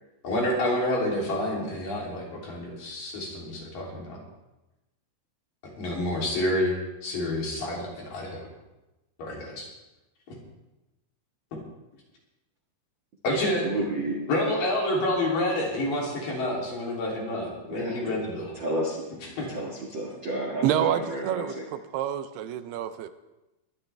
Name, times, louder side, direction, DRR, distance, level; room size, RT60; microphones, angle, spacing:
voice 1, 0.2-4.2 5.6-6.7 7.0-8.5 9.2-9.7 13.2-13.6 14.3-18.5 19.4-19.5, left 1 dB, 60° left, -3 dB, 4.8 m, -28 dB
voice 2, 13.3-14.2 17.6-18.2 18.5-19.0 19.5-21.7, right 1 dB, 45° right, -2 dB, 1.6 m, -32 dB
voice 3, 20.6-21.5 21.9-23.1, right 10 dB, 85° right, 11 dB, 2.7 m, -27 dB
21.5 x 11.5 x 3.4 m, 1.0 s
omnidirectional pair, 4.5 m